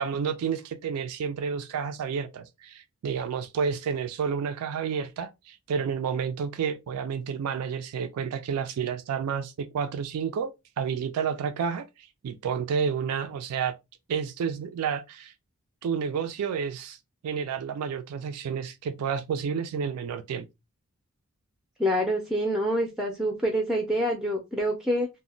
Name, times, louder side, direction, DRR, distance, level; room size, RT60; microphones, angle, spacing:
voice 1, 0.0-10.5 10.8-13.7 14.1-15.3 15.8-17.0 17.2-20.5, right 6 dB, 85° right, 0.3 m, -30 dB
voice 2, 21.8-25.1, equal, ahead, 0.3 m, -26 dB
2.1 x 2.0 x 3.7 m
head